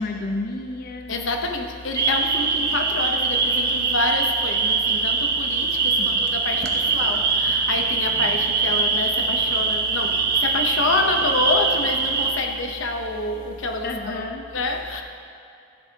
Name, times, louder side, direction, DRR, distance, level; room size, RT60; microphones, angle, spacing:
voice 1, 0.0-1.2 6.0-6.2 13.8-14.5, left 2 dB, 50° left, 3 dB, 0.6 m, -30 dB
voice 2, 1.1-15.0, left 2 dB, 85° left, 3 dB, 0.9 m, -27 dB
sound 1, 1.9-12.3, right 4 dB, 55° right, 1.0 m, -22 dB
14.0 x 10.0 x 2.9 m, 2.7 s
head